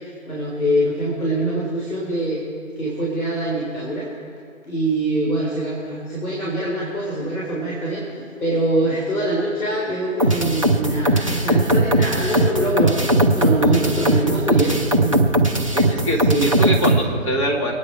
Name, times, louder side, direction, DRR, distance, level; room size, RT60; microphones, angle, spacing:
voice 1, 0.3-2.4 2.8-4.1 4.7-8.0 8.4-15.2 15.5-15.7 16.3-16.4, right 1 dB, 85° left, -4 dB, 3.8 m, -23 dB
sound 1, 10.2-17.0, right 1 dB, 25° right, 0.6 m, -18 dB
voice 2, 15.7-17.7, equal, 20° left, -2 dB, 1.8 m, -24 dB
24.0 x 9.8 x 4.6 m, 2.4 s
figure-of-eight pair, 155°, 42 cm